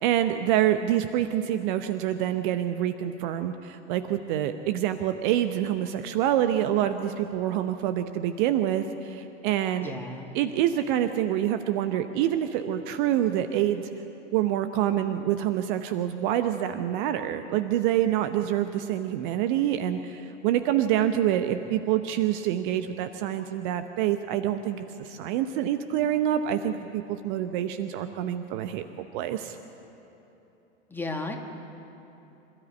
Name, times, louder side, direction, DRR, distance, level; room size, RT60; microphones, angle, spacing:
voice 1, 0.0-9.9 10.3-13.8 14.3-28.8 29.1-29.6, right 11 dB, 45° right, 9 dB, 0.9 m, -26 dB
voice 2, 9.8-10.3 30.9-31.4, left 2 dB, 5° left, 2 dB, 2.0 m, -34 dB
26.5 x 13.0 x 8.2 m, 3.0 s
figure-of-eight pair, 90°, 35 cm